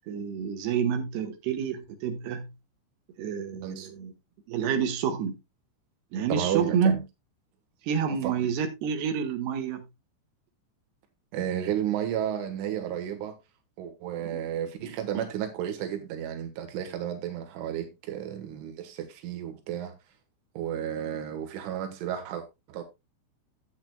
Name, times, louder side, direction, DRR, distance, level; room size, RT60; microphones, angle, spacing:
voice 1, 0.1-2.5 3.2-4.1 4.5-5.4 6.1-7.0 7.8-9.8 14.2-14.4 14.8-15.3, right 7 dB, 65° right, 3.3 m, -29 dB
voice 2, 3.5-3.9 6.3-7.0 8.0-8.4 11.3-13.4 13.8-19.9 20.6-22.8, right 10 dB, 85° right, 3.9 m, -32 dB
12.5 x 8.6 x 2.2 m
omnidirectional pair, 5.4 m